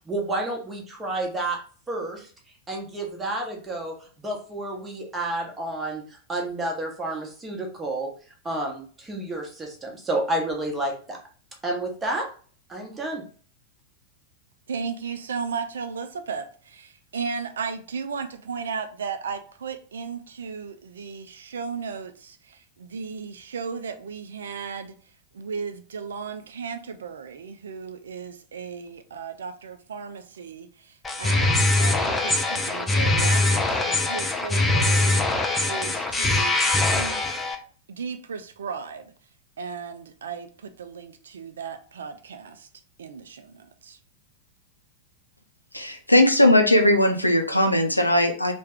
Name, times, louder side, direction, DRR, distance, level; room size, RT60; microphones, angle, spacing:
voice 1, 0.1-1.6 1.9-2.3 2.7-6.0 6.3-8.1 8.4-11.2 11.6-12.3 12.7-13.2, right 2 dB, 15° right, 0.9 m, -30 dB
voice 2, 14.7-25.0 25.3-35.2 35.7-37.2 37.9-39.1 39.6-42.7 43.0-44.0, right 5 dB, 65° right, 0.4 m, -35 dB
sound 1, 31.0-37.6, left 2 dB, 10° left, 0.5 m, -22 dB
voice 3, 45.7-48.5, left 1 dB, 85° left, 0.5 m, -19 dB
3.3 x 2.1 x 3.4 m
figure-of-eight pair, 90°, 0 cm